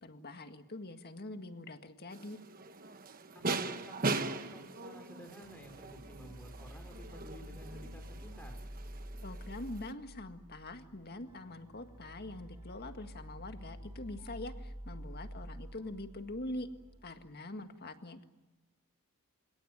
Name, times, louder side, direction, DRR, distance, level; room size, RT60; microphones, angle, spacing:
voice 1, 0.0-2.4 9.2-16.7 17.0-18.2, left 1 dB, 45° left, 7 dB, 1.8 m, -44 dB
sound 1, 2.1-9.9, right 3 dB, 40° right, 1.3 m, -40 dB
voice 2, 3.5-4.0 4.3-8.6, equal, 10° left, 4 dB, 5.0 m, -52 dB
sound 2, 5.4-17.1, equal, 20° right, 4.8 m, -49 dB
29.0 x 18.0 x 9.4 m, 1.1 s
head